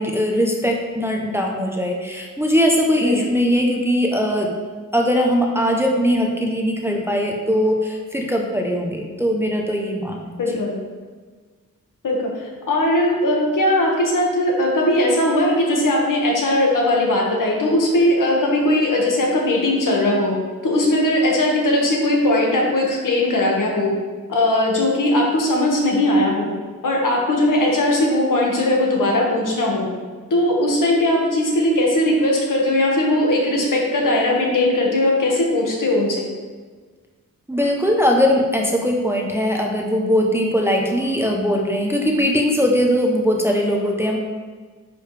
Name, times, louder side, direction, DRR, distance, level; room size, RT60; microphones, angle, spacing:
voice 1, 0.0-4.5 4.9-10.3 37.5-44.2, equal, 5° right, 0 dB, 0.7 m, -20 dB
voice 2, 10.4-10.7 12.0-20.3 20.6-23.9 24.3-26.5 26.8-29.9 30.3-36.2, left 1 dB, 70° left, -1 dB, 1.7 m, -19 dB
9.7 x 5.1 x 3.3 m, 1.5 s
wide cardioid pair, 165°, 33 cm